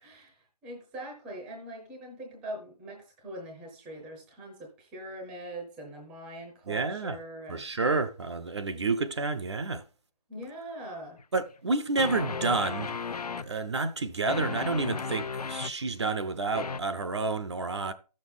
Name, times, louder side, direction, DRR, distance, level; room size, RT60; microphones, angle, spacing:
voice 1, 0.0-7.6 10.3-11.2, right 1 dB, 5° right, 0.7 m, -42 dB
voice 2, 6.7-7.2 7.5-9.8 11.3-13.0 13.4-17.9, right 3 dB, 40° right, 0.6 m, -29 dB
sound 1, 11.2-11.3 12.0-13.5 14.3-15.7 16.5-16.8, left 5 dB, 70° left, 0.5 m, -34 dB
14.0 x 6.4 x 3.7 m
figure-of-eight pair, 160°, 21 cm